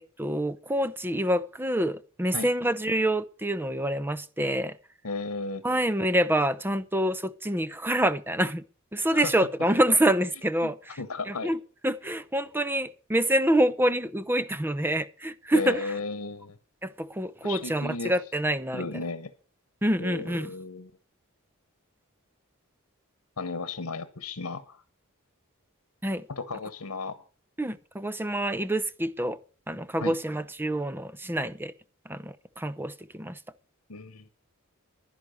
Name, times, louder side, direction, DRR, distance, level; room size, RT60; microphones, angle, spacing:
voice 1, 0.0-4.8 5.6-8.6 8.9-11.0 11.3-11.6 11.8-15.9 16.8-18.9 19.8-20.5 26.0-26.2 27.6-29.4 29.7-31.7 32.1-33.4, right 1 dB, 10° right, 0.6 m, -27 dB
voice 2, 5.0-5.6 9.1-9.3 10.6-11.5 15.5-16.6 17.4-18.1 18.7-19.3 20.0-20.9 23.4-24.8 26.3-27.2 30.0-30.2 33.9-34.3, left 4 dB, 75° left, 1.1 m, -34 dB
11.0 x 10.5 x 6.4 m
head